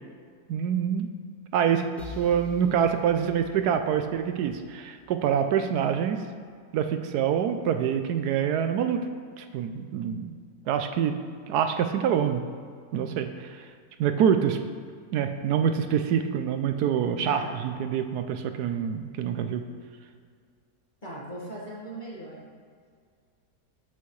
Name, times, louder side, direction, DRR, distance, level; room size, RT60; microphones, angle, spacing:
voice 1, 0.5-1.1 1.5-1.9 2.2-6.2 6.7-9.0 9.4-10.4 10.7-11.1 11.5-12.4 12.9-13.7 14.0-14.6 15.1-19.6, right 8 dB, 80° right, 8 dB, 1.1 m, -26 dB
sound 1, 2.0-5.7, left 4 dB, ahead, 1.2 m, -47 dB
voice 2, 17.3-17.6 21.0-22.4, right 1 dB, 30° left, -5 dB, 2.0 m, -38 dB
14.0 x 6.2 x 3.2 m, 2.1 s
omnidirectional pair, 1.7 m